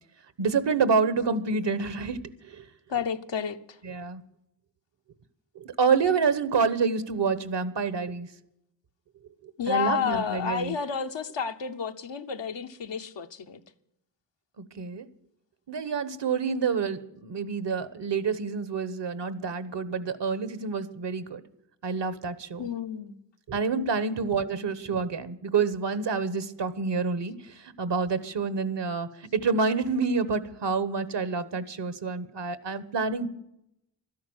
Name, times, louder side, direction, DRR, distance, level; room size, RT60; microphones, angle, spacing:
voice 1, 0.4-2.7 3.8-4.2 5.5-8.3 9.4-10.7 14.6-15.1 15.7-21.4 21.8-22.7 23.5-33.3, right 5 dB, 75° right, 1.2 m, -28 dB
voice 2, 2.9-3.8 9.6-13.6 22.6-23.2 23.7-24.2, left 6 dB, 85° left, 1.0 m, -31 dB
13.0 x 11.0 x 7.9 m
cardioid pair, 50°, 43 cm